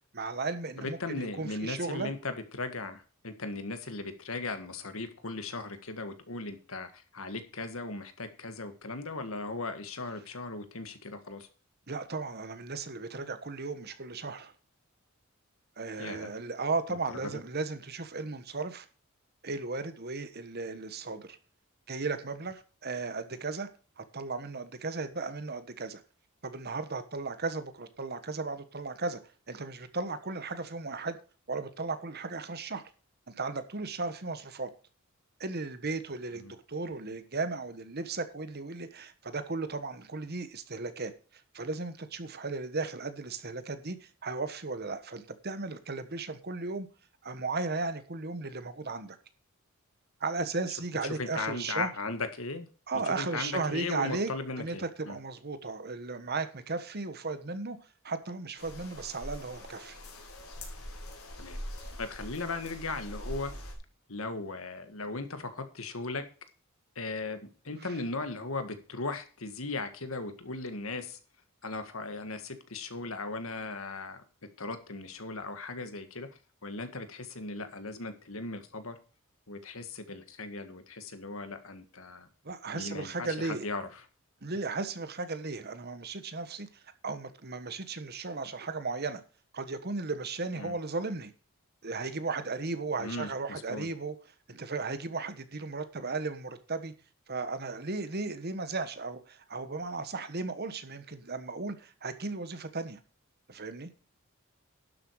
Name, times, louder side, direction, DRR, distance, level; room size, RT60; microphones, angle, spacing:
voice 1, 0.1-2.1 11.9-14.5 15.8-18.9 19.4-21.4 21.9-23.7 24.0-26.0 26.4-29.2 29.5-31.2 31.5-32.9 33.3-34.7 35.4-46.9 47.2-49.2 50.2-51.9 52.9-54.3 54.6-57.8 58.0-60.0 67.8-67.9 82.4-83.6 84.4-86.7 87.0-89.2 89.5-91.3 91.8-94.1 94.5-96.9 97.3-103.0 103.5-103.9, right 3 dB, 45° right, 1.3 m, -35 dB
voice 2, 0.8-11.5 16.0-16.3 17.2-17.4 36.3-36.5 51.0-52.7 53.1-55.2 61.4-61.6 62.0-63.5 64.1-66.2 67.0-71.2 71.6-74.2 74.6-76.3 76.6-79.0 79.5-82.3 82.7-84.0 90.6-90.8 93.0-93.9, left 3 dB, 70° left, 1.8 m, -37 dB
sound 1, 58.6-63.8, left 1 dB, 90° left, 4.1 m, -43 dB
11.5 x 7.6 x 4.8 m
head